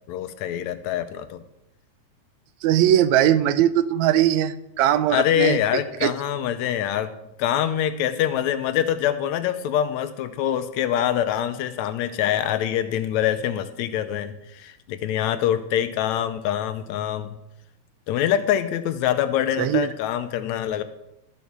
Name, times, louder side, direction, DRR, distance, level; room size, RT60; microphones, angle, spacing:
voice 1, 0.1-1.4 5.1-7.1 7.4-17.4 18.1-20.8, left 11 dB, 80° left, 11 dB, 1.9 m, -24 dB
voice 2, 2.6-6.1 19.6-19.9, right 11 dB, 80° right, 14 dB, 1.8 m, -20 dB
13.5 x 7.1 x 6.0 m, 0.85 s
omnidirectional pair, 3.4 m